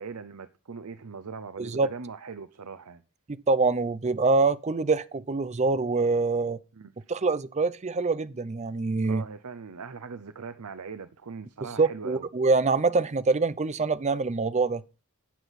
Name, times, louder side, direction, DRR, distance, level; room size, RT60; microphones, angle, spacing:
voice 1, 0.0-3.0 6.7-6.9 9.0-12.3, right 5 dB, 80° right, 0.7 m, -40 dB
voice 2, 1.6-1.9 3.3-6.6 7.1-9.2 11.8-14.8, right 3 dB, 30° right, 0.5 m, -25 dB
11.5 x 8.2 x 4.1 m
head